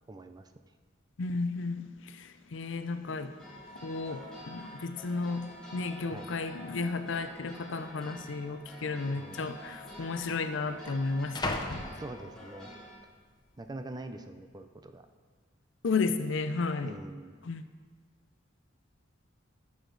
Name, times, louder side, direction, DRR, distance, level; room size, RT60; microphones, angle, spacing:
voice 1, 0.1-0.5 6.1-6.3 9.1-9.5 11.9-12.7 13.6-15.1 15.9-16.0 16.8-17.4, right 2 dB, 20° right, 8 dB, 0.5 m, -44 dB
voice 2, 1.2-3.3 3.8-11.8 15.8-17.0 17.4-17.6, left 4 dB, 70° left, 10 dB, 0.6 m, -33 dB
sound 1, 3.4-12.9, left 1 dB, 5° left, 2.3 m, -48 dB
sound 2, 4.0-4.1 4.3-4.7 5.4-5.5 6.3-6.8 7.0-7.2 8.0-8.2 9.2-9.3 9.5-12.7 13.2-13.6, left 2 dB, 20° left, 0.7 m, -40 dB
14.0 x 6.4 x 4.0 m, 1.5 s
head